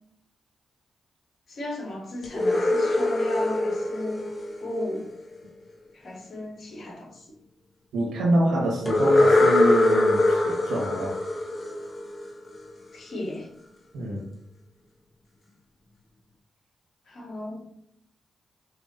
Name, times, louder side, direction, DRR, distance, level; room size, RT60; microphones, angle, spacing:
voice 1, 1.5-4.3 4.6-5.1 5.9-7.3 12.9-13.5 17.1-17.7, left 1 dB, 65° left, -1 dB, 1.6 m, -35 dB
sound 1, 2.2-5.2 8.9-12.6, left 2 dB, 40° left, 1.1 m, -23 dB
voice 2, 7.9-11.2 13.9-14.2, right 1 dB, 85° right, -3 dB, 1.7 m, -26 dB
5.6 x 2.9 x 2.8 m, 0.74 s
supercardioid pair, 50°, 0 cm